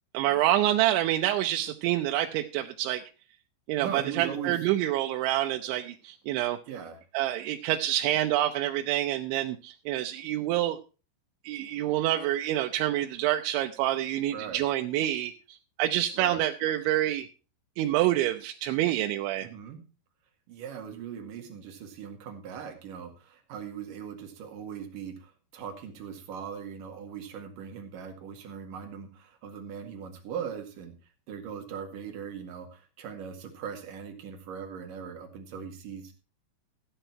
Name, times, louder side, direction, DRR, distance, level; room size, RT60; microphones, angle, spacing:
voice 1, 0.1-3.0 3.7-6.6 7.1-10.8 11.4-15.3 15.8-17.3 17.8-19.5, right 13 dB, 85° right, 4 dB, 3.1 m, -27 dB
voice 2, 3.8-4.6 6.7-7.0 14.3-14.7 16.1-16.5 19.4-19.8 20.5-31.0 31.3-36.1, right 7 dB, 55° right, 4 dB, 3.0 m, -40 dB
14.0 x 9.1 x 4.4 m, 0.33 s
omnidirectional pair, 5.3 m